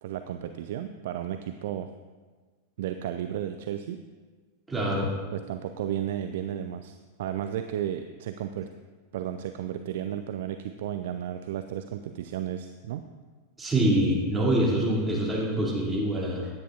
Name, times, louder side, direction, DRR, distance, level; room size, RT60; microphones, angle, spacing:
voice 1, 0.0-1.9 2.8-4.0 5.3-8.7 9.1-13.0, right 10 dB, 55° right, 8 dB, 0.4 m, -33 dB
voice 2, 4.7-5.1 13.6-16.5, right 1 dB, 10° right, -5 dB, 2.9 m, -25 dB
15.5 x 10.0 x 2.6 m, 1.4 s
figure-of-eight pair, 90°, 0 cm